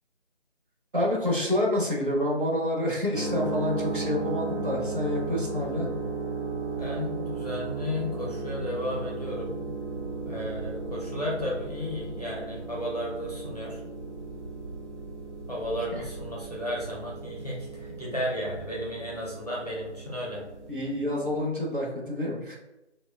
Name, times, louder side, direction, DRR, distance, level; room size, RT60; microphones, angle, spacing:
voice 1, 0.9-5.9 15.9-16.0 20.7-22.6, left 1 dB, 45° right, -3 dB, 0.8 m, -28 dB
sound 1, 3.1-21.5, right 3 dB, 75° right, 0.8 m, -35 dB
voice 2, 6.8-9.6 10.3-13.8 15.5-20.4, left 1 dB, 35° left, -4 dB, 0.6 m, -34 dB
2.9 x 2.1 x 3.3 m, 0.97 s
figure-of-eight pair, 165°, 35 cm